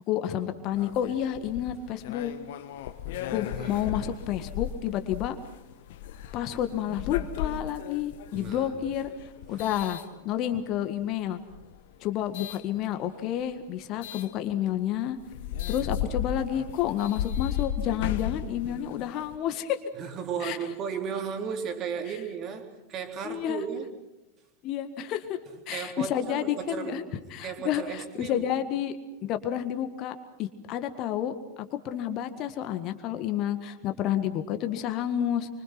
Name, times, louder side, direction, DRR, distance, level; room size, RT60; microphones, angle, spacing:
voice 1, 0.1-2.3 3.3-5.4 6.3-9.1 9.5-10.0 10.2-11.4 12.0-15.2 15.7-19.8 20.4-20.6 23.2-23.6 24.6-25.4 25.7-27.0 27.3-35.5, left 10 dB, 40° left, 8 dB, 1.8 m, -30 dB
sound 1, 0.7-10.7 11.4-12.6 14.0-14.3 14.8-14.9 15.2-19.4, left 10 dB, 55° left, 1.3 m, -36 dB
voice 2, 8.3-8.9 9.5-9.7 19.9-23.9 25.7-27.0 27.4-28.4, right 7 dB, 35° right, 4 dB, 3.5 m, -35 dB
26.5 x 25.0 x 6.0 m, 1.0 s
figure-of-eight pair, 90°, 0 cm